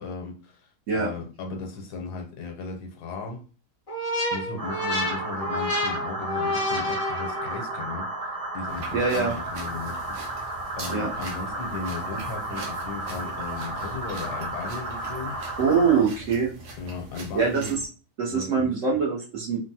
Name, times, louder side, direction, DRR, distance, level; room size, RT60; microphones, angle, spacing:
voice 1, 0.0-3.4 4.3-10.2 10.8-15.4 16.8-17.7 18.3-18.7, left 4 dB, 75° left, 1.2 m, -36 dB
sound 1, 3.9-7.8, left 1 dB, 35° left, 0.6 m, -29 dB
sound 2, 4.6-16.0, right 2 dB, 40° right, 1.0 m, -33 dB
sound 3, 8.7-17.9, right 1 dB, 80° right, 1.4 m, -42 dB
voice 2, 8.9-9.3 10.9-11.1 15.6-16.5 17.3-17.8 18.2-19.6, right 5 dB, 60° right, 0.9 m, -23 dB
3.3 x 2.1 x 2.7 m
omnidirectional pair, 1.8 m